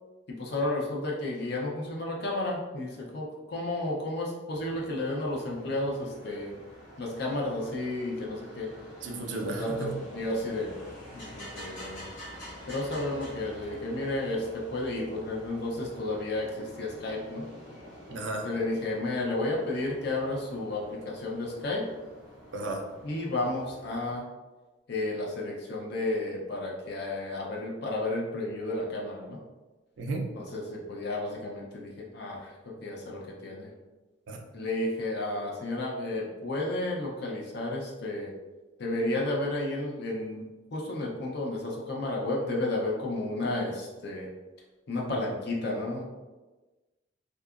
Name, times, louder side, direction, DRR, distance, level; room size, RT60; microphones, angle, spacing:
voice 1, 0.4-6.6 7.0-8.7 9.3-10.7 11.1-12.0 12.7-17.4 18.4-21.8 23.0-24.2 24.9-29.4 30.3-32.5 32.8-33.7 34.5-38.3 38.8-44.3 44.9-46.0, left 2 dB, 55° left, -2 dB, 0.5 m, -32 dB
sound 1, 4.5-24.2, equal, 75° left, 1.0 m, -48 dB
voice 2, 9.0-10.0 18.1-18.5 22.5-22.8 30.0-30.3 34.3-34.4 45.1-45.2, right 2 dB, 70° right, 3 dB, 0.4 m, -34 dB
2.8 x 2.3 x 2.3 m, 1.2 s
head